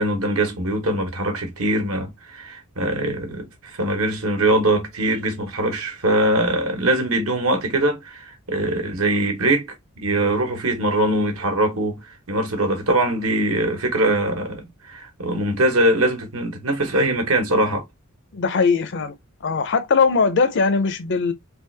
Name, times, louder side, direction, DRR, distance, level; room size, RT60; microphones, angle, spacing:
voice 1, 0.0-9.7 10.0-12.0 12.3-17.8, right 1 dB, 70° right, 1.2 m, -22 dB
voice 2, 18.3-19.1 19.4-21.3, left 4 dB, 55° left, 0.6 m, -20 dB
3.5 x 2.4 x 3.2 m
head